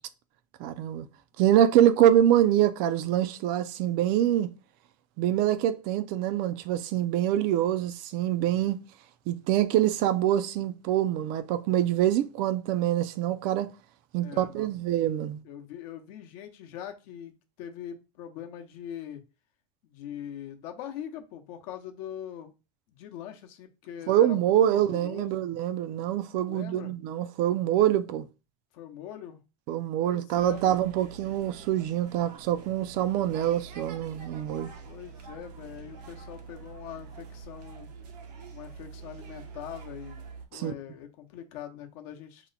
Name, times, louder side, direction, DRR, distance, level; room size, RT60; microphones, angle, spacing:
voice 1, 0.6-1.1 1.4-4.5 5.2-8.8 9.3-13.7 14.1-15.4 24.1-28.3 29.7-34.7 40.5-40.7, right 11 dB, 50° right, 0.4 m, -25 dB
voice 2, 14.2-14.7 15.4-19.2 19.8-22.5 22.9-25.4 26.4-26.9 28.7-29.4 30.0-30.8 34.8-37.9 38.5-40.2 40.5-42.5, left 10 dB, 65° left, 0.7 m, -42 dB
sound 1, 30.3-40.5, right 5 dB, 85° right, 0.8 m, -46 dB
2.8 x 2.1 x 3.9 m
supercardioid pair, 145°, 20 cm